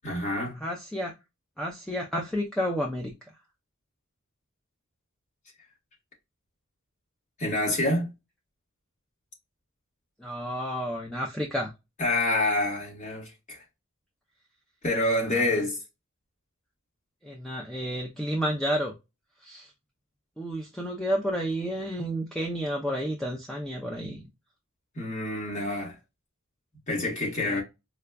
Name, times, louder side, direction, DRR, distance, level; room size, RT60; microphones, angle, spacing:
voice 1, 0.0-0.6 7.4-8.1 12.0-13.6 14.8-15.8 24.9-26.0 26.9-27.6, left 1 dB, 35° left, 1.4 m, -27 dB
voice 2, 0.6-1.1 1.6-3.1 10.2-11.7 15.3-15.4 17.2-18.9 19.4-19.7 20.4-24.3 27.4-27.6, equal, 5° left, 0.4 m, -31 dB
4.8 x 2.2 x 2.2 m
head